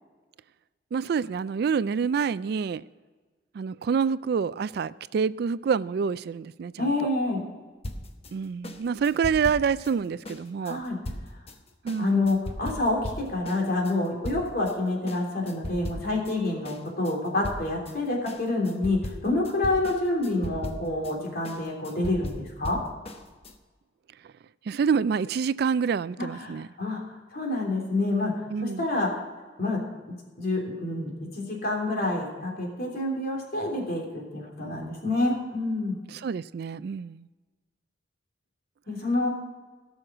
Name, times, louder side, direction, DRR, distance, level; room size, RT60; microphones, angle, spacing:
voice 1, 0.9-2.8 3.5-7.1 8.3-10.8 11.8-12.3 24.7-26.7 28.5-28.9 36.1-37.3, right 6 dB, 60° right, 17 dB, 0.3 m, -27 dB
voice 2, 6.8-7.4 10.6-11.0 12.0-22.8 26.2-27.0 27.3-28.3 28.6-29.2 29.6-29.8 30.4-36.0 38.9-39.3, left 2 dB, 55° left, 0 dB, 3.3 m, -27 dB
sound 1, 7.8-14.8 15.1-16.4 16.6-23.6, left 1 dB, 35° left, 1.0 m, -38 dB
17.5 x 6.4 x 6.0 m, 1.4 s
head